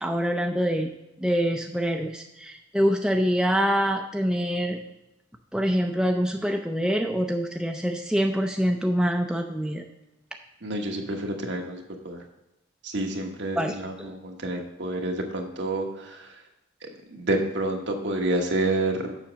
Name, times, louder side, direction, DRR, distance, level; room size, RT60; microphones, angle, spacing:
voice 1, 0.0-0.9 1.2-4.8 5.5-9.8 13.6-14.1, equal, 5° right, 3 dB, 0.4 m, -25 dB
voice 2, 10.6-12.2 12.8-16.3 17.1-19.2, right 2 dB, 65° right, 2 dB, 1.2 m, -29 dB
7.2 x 6.0 x 6.2 m, 0.90 s
head